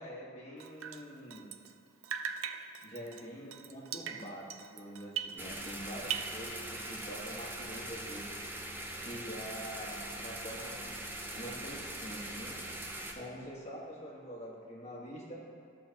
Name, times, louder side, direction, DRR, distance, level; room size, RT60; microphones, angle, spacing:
voice 1, 0.0-1.5 2.8-8.3 9.0-10.9 11.3-15.4, equal, 35° left, -4 dB, 1.5 m, -45 dB
Drip, 0.6-5.8 6.0-7.1, right 8 dB, 80° right, 0.4 m, -41 dB
sound 1, 5.4-13.1, right 1 dB, 10° right, 0.5 m, -42 dB
13.5 x 6.4 x 2.9 m, 2.3 s
head